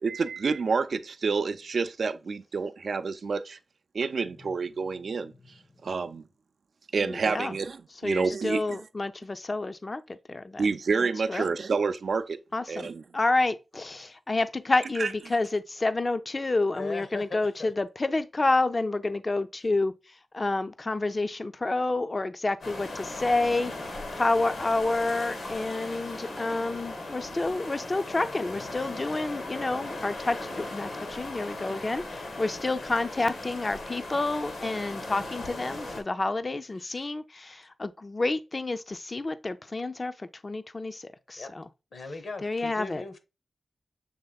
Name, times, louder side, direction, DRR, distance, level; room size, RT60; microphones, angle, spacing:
voice 1, 0.0-3.6 3.9-5.3 5.8-6.2 6.9-8.8 10.6-12.4 12.7-13.0 15.0-15.1, right 4 dB, 70° right, 0.4 m, -28 dB
voice 2, 7.0-7.6 8.0-10.7 11.0-11.5 12.5-19.9 20.3-41.7 42.4-43.0, left 2 dB, 35° left, 0.4 m, -29 dB
voice 3, 16.7-17.7 36.8-37.0 41.4-41.5 41.9-43.2, left 3 dB, 70° left, 1.0 m, -39 dB
sound 1, 22.6-36.0, left 2 dB, 90° left, 1.6 m, -38 dB
6.6 x 3.4 x 2.3 m
wide cardioid pair, 75°, 0 cm